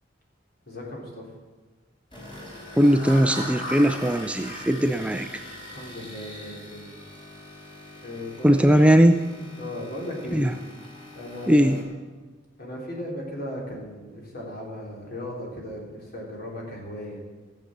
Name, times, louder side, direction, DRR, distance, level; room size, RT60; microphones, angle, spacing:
voice 1, 0.7-1.3 5.6-6.9 8.0-9.1 9.6-10.5 11.1-11.8 12.6-17.2, left 1 dB, 55° left, -2 dB, 3.7 m, -36 dB
sound 1, 2.1-11.8, left 1 dB, 25° left, 4.3 m, -40 dB
voice 2, 2.8-5.3 8.4-9.1 10.3-10.5 11.5-11.8, equal, 5° right, 7 dB, 0.4 m, -19 dB
15.0 x 7.8 x 7.4 m, 1.3 s
head